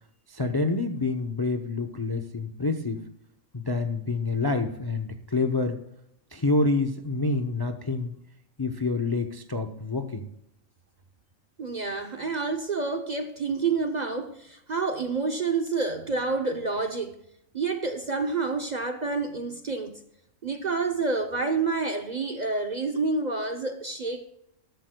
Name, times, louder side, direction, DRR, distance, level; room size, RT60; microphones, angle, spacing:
voice 1, 0.3-3.0 3.5-5.8 6.3-8.1 8.6-10.3, left 3 dB, 25° left, 0.5 m, -27 dB
voice 2, 11.6-17.2 17.5-20.0 20.4-24.2, right 4 dB, 40° right, 0.7 m, -28 dB
14.0 x 11.5 x 2.2 m
omnidirectional pair, 1.4 m